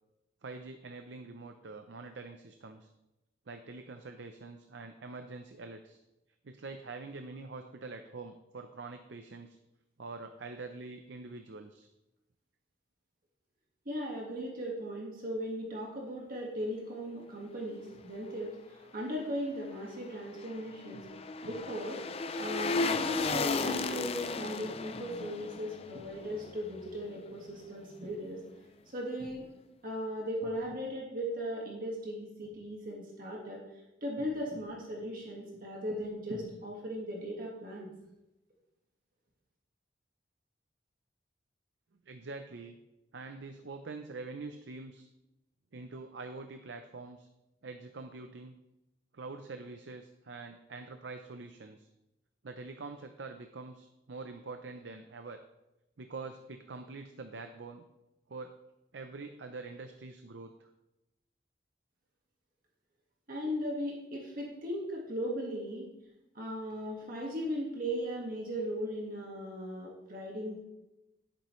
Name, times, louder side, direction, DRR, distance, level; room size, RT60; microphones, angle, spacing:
voice 1, 0.4-2.9 3.5-6.0 6.4-9.6 10.0-11.9 42.1-42.8 43.1-45.1 45.7-47.3 47.6-48.6 49.1-51.9 52.4-55.4 56.0-57.8 58.3-58.5 58.9-60.7, right 3 dB, 65° right, 7 dB, 0.6 m, -45 dB
voice 2, 13.8-21.1 21.4-22.0 22.3-28.4 28.9-29.5 29.8-33.6 34.0-37.9 63.3-65.9 66.3-70.6, equal, 45° right, -2 dB, 1.7 m, -37 dB
sound 1, 20.0-27.2 27.5-27.6, left 3 dB, 30° left, 0.4 m, -35 dB
11.0 x 8.6 x 3.1 m, 0.95 s
head